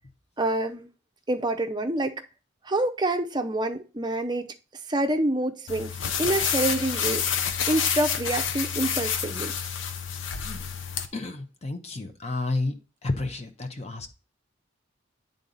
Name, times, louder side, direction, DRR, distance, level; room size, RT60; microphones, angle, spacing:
voice 1, 0.4-0.9 1.3-2.2 2.6-4.5 4.9-5.9 6.2-7.2 7.7-9.5, right 1 dB, 20° right, 0.6 m, -27 dB
sound 1, 5.7-11.1, left 7 dB, 70° left, 0.7 m, -28 dB
voice 2, 11.1-12.8 13.0-14.1, left 2 dB, 35° left, 0.9 m, -31 dB
8.8 x 3.9 x 3.9 m
head